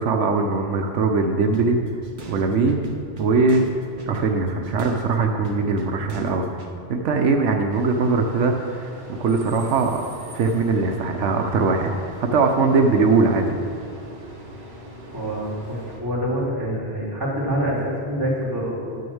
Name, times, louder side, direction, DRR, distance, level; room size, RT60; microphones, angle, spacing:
voice 1, 0.0-1.8 2.3-2.9 3.2-3.6 4.1-6.5 6.9-8.9 9.2-10.0 10.3-11.9 12.2-13.6, right 4 dB, 85° right, 4 dB, 1.1 m, -21 dB
sound 1, 1.5-6.7, right 1 dB, 50° right, 1.0 m, -40 dB
sound 2, 7.7-16.0, right 1 dB, 65° right, 1.8 m, -41 dB
voice 2, 15.1-19.0, equal, 20° right, -8 dB, 3.2 m, -26 dB
9.3 x 6.5 x 7.1 m, 2.4 s
omnidirectional pair, 1.2 m